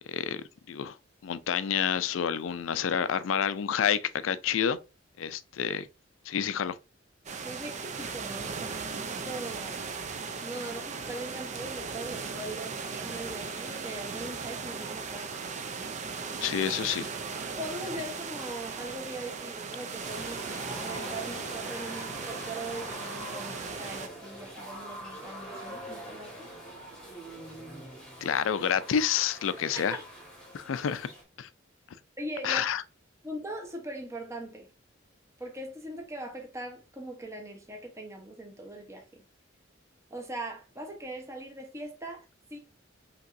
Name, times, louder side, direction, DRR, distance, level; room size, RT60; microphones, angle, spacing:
voice 1, 0.1-1.0 1.2-4.8 5.2-5.9 6.3-6.8 16.4-17.1 28.2-30.0 30.5-31.1 31.4-31.5 32.4-32.8, left 8 dB, 85° left, 0.4 m, -29 dB
sound 1, 7.3-24.1, right 5 dB, 40° right, 0.4 m, -37 dB
voice 2, 7.4-9.8 10.4-15.3 17.5-26.5 29.7-30.0 32.2-32.7 33.2-34.7 35.4-39.2 40.1-42.6, right 1 dB, 15° right, 0.9 m, -41 dB
sound 2, 20.0-31.2, equal, 5° left, 1.4 m, -43 dB
5.2 x 3.0 x 2.6 m
head